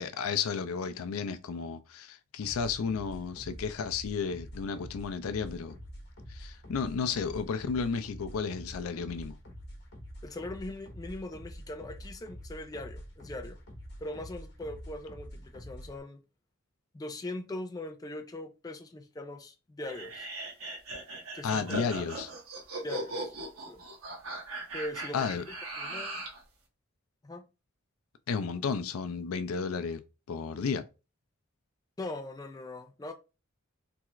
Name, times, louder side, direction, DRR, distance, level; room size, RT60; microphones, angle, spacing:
voice 1, 0.0-5.8 6.3-9.4 21.4-22.3 25.1-25.5 28.3-30.0 30.3-30.8, left 5 dB, 85° left, 0.4 m, -33 dB
sound 1, 2.4-16.0, equal, 55° left, 1.0 m, -46 dB
voice 2, 10.2-13.6 14.0-16.2 16.9-20.3 21.3-21.8 22.8-23.4 23.7-23.8 24.7-25.3 25.8-26.2 27.2-27.5 32.0-33.1, left 1 dB, 20° left, 0.3 m, -40 dB
sound 2, 19.9-26.4, right 2 dB, 85° right, 1.1 m, -39 dB
3.4 x 2.3 x 3.0 m
head